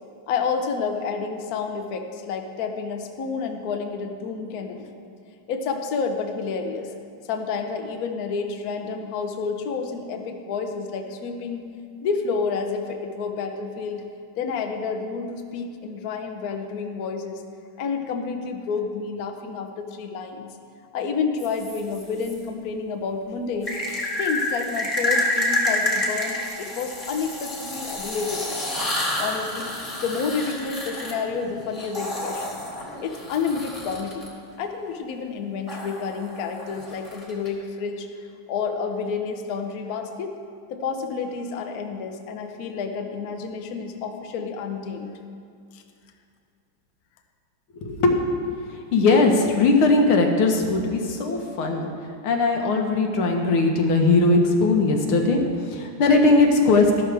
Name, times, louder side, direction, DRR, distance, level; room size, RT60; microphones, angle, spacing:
voice 1, 0.3-4.9 5.5-6.9 7.3-11.6 12.0-14.0 14.4-17.4 17.8-20.5 20.9-23.8 24.2-28.6 29.2-29.7 30.0-32.6 33.0-34.2 34.6-40.3 40.7-45.2 45.7-45.8, left 5 dB, 55° left, 5 dB, 1.1 m, -29 dB
sound 1, 21.4-22.3 23.6-34.3 35.7-37.5, left 1 dB, 15° left, 1.7 m, -29 dB
voice 2, 47.8-48.2 48.6-51.9 52.2-57.0, left 3 dB, 80° left, 2 dB, 2.0 m, -19 dB
13.5 x 12.0 x 3.4 m, 2.4 s
omnidirectional pair, 2.3 m